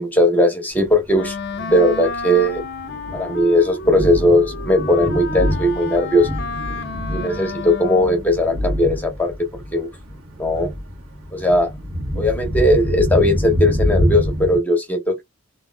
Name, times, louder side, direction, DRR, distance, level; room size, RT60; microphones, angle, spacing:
voice 1, 0.0-1.4 1.7-2.6 3.1-6.3 7.1-9.3 9.7-9.9 10.4-10.7 11.3-11.7 12.2-15.2, left 1 dB, 10° left, 0.8 m, -18 dB
Thunder, 0.9-14.6, equal, 80° right, 1.3 m, -26 dB
Wind instrument woodwind instrument, 1.1-8.3, left 4 dB, 50° left, 0.4 m, -31 dB
2.8 x 2.7 x 2.2 m
head